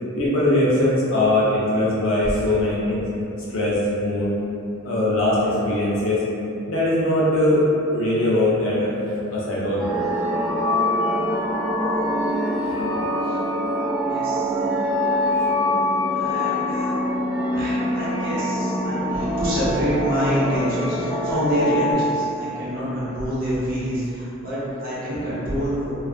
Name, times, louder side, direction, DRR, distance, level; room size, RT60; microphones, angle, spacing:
voice 1, 0.2-3.1 3.5-4.3 4.8-6.2 6.7-7.7 7.9-8.9 9.3-9.9 12.7-12.8, left 1 dB, 75° left, -7 dB, 0.7 m, -21 dB
sound 1, 9.8-21.9, left 1 dB, ahead, 0.4 m, -24 dB
voice 2, 14.0-14.6 16.1-16.9 17.5-25.9, equal, 45° right, -11 dB, 0.9 m, -26 dB
2.5 x 2.3 x 2.4 m, 2.8 s
head